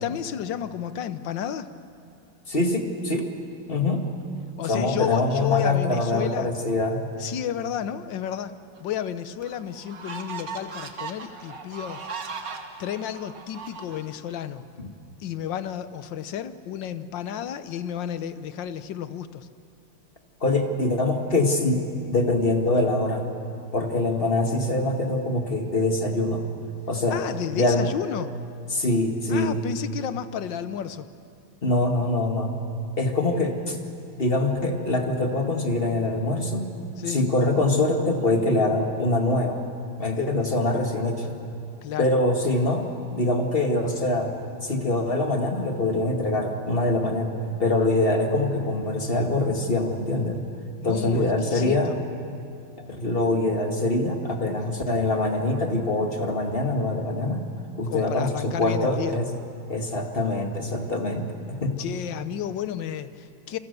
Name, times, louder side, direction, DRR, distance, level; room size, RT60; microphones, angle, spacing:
voice 1, 0.0-1.7 4.6-6.5 7.2-8.5 8.8-12.0 12.8-14.6 15.2-19.5 27.1-28.4 29.3-31.1 37.0-37.2 41.8-42.1 50.8-52.0 57.9-59.2 61.8-63.6, left 9 dB, 70° left, 12 dB, 1.5 m, -32 dB
voice 2, 2.5-3.3 3.7-4.1 4.7-7.0 14.8-14.9 20.4-23.2 23.7-26.5 26.9-27.2 27.6-27.9 28.7-29.6 31.6-32.6 33.0-33.8 34.2-36.7 37.1-39.6 40.0-41.4 42.0-42.9 43.1-44.4 44.6-47.3 47.6-50.4 50.8-52.0 52.9-57.4 57.8-59.3 59.7-61.8, left 2 dB, 30° left, 3 dB, 2.1 m, -24 dB
sound 1, 8.8-8.9 9.4-14.4, right 5 dB, 45° right, 1.9 m, -38 dB
28.0 x 25.5 x 6.8 m, 2.5 s
omnidirectional pair, 2.2 m